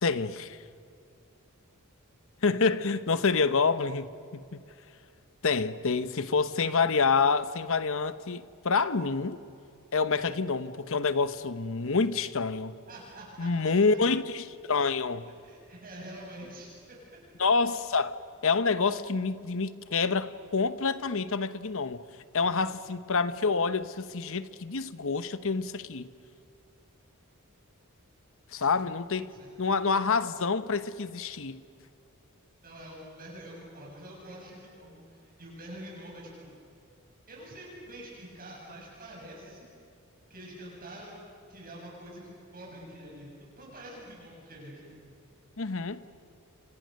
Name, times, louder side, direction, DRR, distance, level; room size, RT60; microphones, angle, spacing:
voice 1, 0.0-0.6 2.4-4.6 5.4-9.4 9.9-12.8 13.4-15.3 17.4-18.1 18.4-22.0 22.3-26.1 28.5-29.3 29.6-31.6 45.6-46.0, left 4 dB, 65° left, 1.0 m, -27 dB
voice 2, 12.9-14.0 15.3-17.0 22.4-22.7 28.7-28.9 29.3-29.6 32.6-36.6 37.3-39.7 40.3-45.0, right 1 dB, 40° right, 7.4 m, -46 dB
29.5 x 26.5 x 6.6 m
head